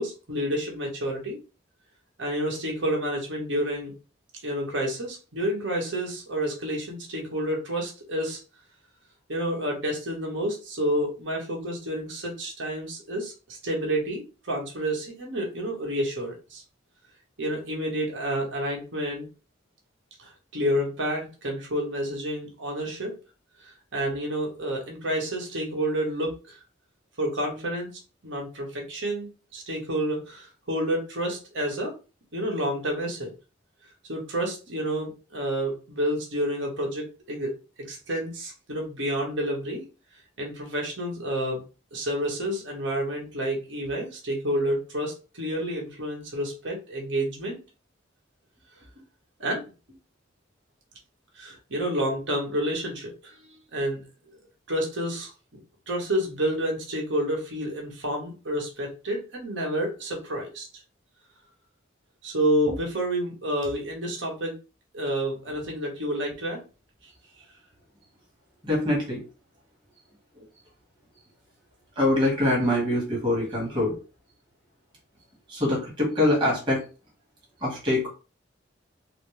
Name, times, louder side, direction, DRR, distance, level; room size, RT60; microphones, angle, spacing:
voice 1, 0.0-1.4 2.2-3.9 4.4-8.4 9.3-16.6 17.4-19.3 20.2-23.1 23.6-26.6 27.2-27.9 28.2-31.9 32.3-33.3 34.1-37.5 37.8-39.8 40.4-41.6 41.9-47.6 49.4-49.6 51.3-54.0 54.7-55.6 55.9-60.7 62.2-64.6 64.9-66.6, equal, 70° right, -1 dB, 1.3 m, -29 dB
voice 2, 68.6-69.2 70.4-70.5 71.9-74.0 75.5-76.8 77.6-78.1, left 1 dB, 25° right, -3 dB, 1.5 m, -24 dB
4.1 x 2.1 x 3.2 m, 0.33 s
head